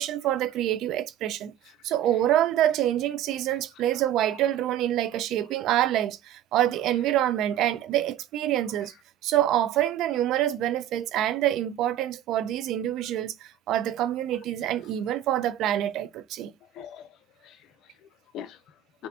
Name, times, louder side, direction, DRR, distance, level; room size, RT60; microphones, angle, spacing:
voice 1, 0.0-1.5 1.8-8.9 9.2-16.5, right 12 dB, 90° right, 0.5 m, -26 dB
voice 2, 1.6-2.4 3.5-4.4 8.7-9.0 14.3-14.9 16.6-19.1, left 9 dB, 90° left, 0.6 m, -47 dB
5.4 x 2.6 x 2.6 m
cardioid pair, 90°, 0 cm